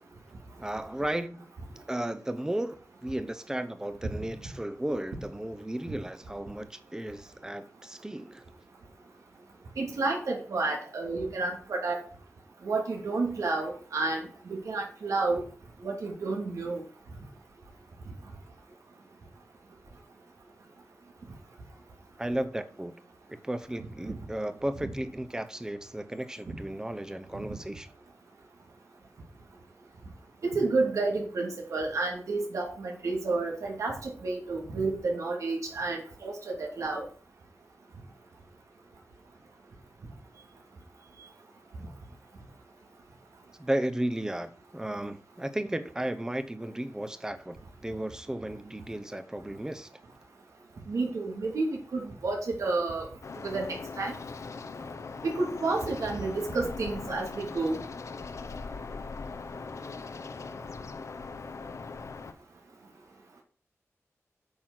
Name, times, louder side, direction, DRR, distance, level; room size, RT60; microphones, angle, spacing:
voice 1, 0.6-1.5 1.9-8.4 22.2-23.0 23.3-27.9 43.6-49.9, right 1 dB, 10° right, 0.9 m, -34 dB
voice 2, 9.8-12.0 12.6-15.4 15.8-16.8 24.0-24.2 26.5-26.6 30.4-37.1 50.9-53.1 53.4-54.1 55.2-57.8, right 3 dB, 90° right, 2.9 m, -30 dB
sound 1, 53.2-62.3, left 4 dB, 70° left, 0.8 m, -40 dB
8.7 x 6.2 x 6.1 m
wide cardioid pair, 120°, 5 cm